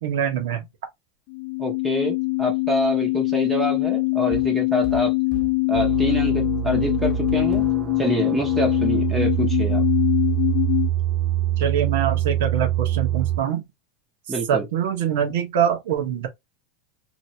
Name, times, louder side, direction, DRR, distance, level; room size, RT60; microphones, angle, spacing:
voice 1, 0.0-0.7 11.6-13.6 14.5-16.3, right 9 dB, 70° right, 1.2 m, -24 dB
sound 1, 1.3-10.9, left 25 dB, 40° left, 0.4 m, -23 dB
voice 2, 1.6-5.1 5.7-7.6 8.0-9.8 14.3-14.6, right 1 dB, 10° right, 0.7 m, -26 dB
sound 2, 4.3-5.7 7.0-7.9, equal, 20° left, 1.0 m, -35 dB
sound 3, 5.7-13.4, right 12 dB, 30° right, 0.4 m, -25 dB
3.0 x 2.6 x 2.8 m
supercardioid pair, 165°, 0 cm